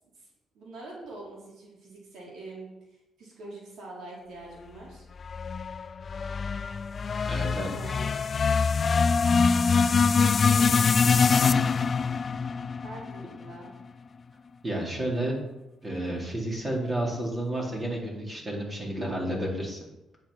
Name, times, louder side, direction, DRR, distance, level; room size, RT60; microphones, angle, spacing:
voice 1, 0.5-5.0 7.6-8.2 9.9-11.4 12.8-13.7, right 2 dB, 75° right, -3 dB, 3.8 m, -44 dB
sound 1, 5.2-13.6, left 5 dB, 40° left, 0.4 m, -24 dB
voice 2, 7.3-7.7 14.6-15.4 15.8-19.8, right 1 dB, 25° right, -2 dB, 4.0 m, -31 dB
10.0 x 8.1 x 5.8 m, 0.94 s
cardioid pair, 90°, 0 cm